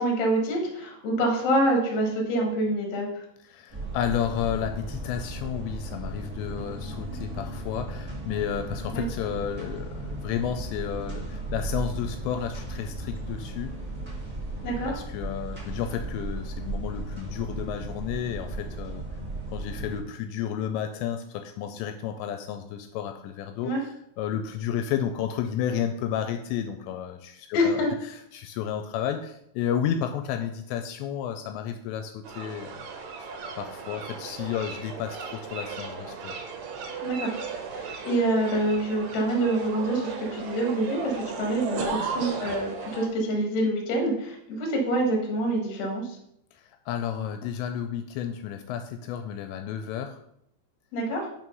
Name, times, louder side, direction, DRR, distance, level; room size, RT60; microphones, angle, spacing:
voice 1, 0.0-3.2 8.9-9.0 14.6-15.0 23.6-23.8 27.5-27.9 37.0-37.4 37.7-46.2 50.9-51.3, right 1 dB, 55° left, 0 dB, 1.9 m, -26 dB
voice 2, 3.5-13.8 14.9-19.1 19.5-27.8 28.1-32.9 33.2-33.3 33.6-36.4 46.5-50.2, left 9 dB, 85° left, 6 dB, 2.7 m, -32 dB
sound 1, 3.7-20.0, right 2 dB, 15° right, 1.2 m, -35 dB
sound 2, 32.2-43.1, right 5 dB, 85° right, 1.9 m, -36 dB
5.8 x 4.8 x 5.3 m, 0.74 s
omnidirectional pair, 5.2 m